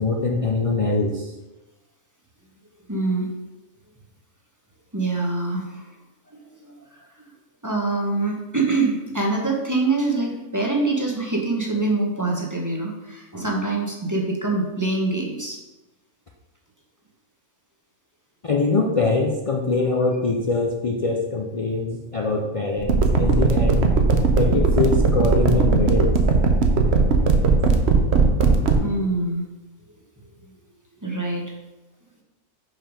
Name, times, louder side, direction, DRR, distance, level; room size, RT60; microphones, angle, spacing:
voice 1, 0.0-1.4 18.4-24.0 24.3-26.1, left 3 dB, 60° left, 0 dB, 0.3 m, -23 dB
voice 2, 2.9-3.3 4.9-5.9 6.3-6.7 7.6-15.6 28.8-29.4 31.0-31.4, right 3 dB, 15° right, -1 dB, 0.9 m, -24 dB
sound 1, 22.8-28.8, right 5 dB, 55° right, 0.9 m, -17 dB
5.7 x 5.0 x 5.0 m, 1.1 s
omnidirectional pair, 1.5 m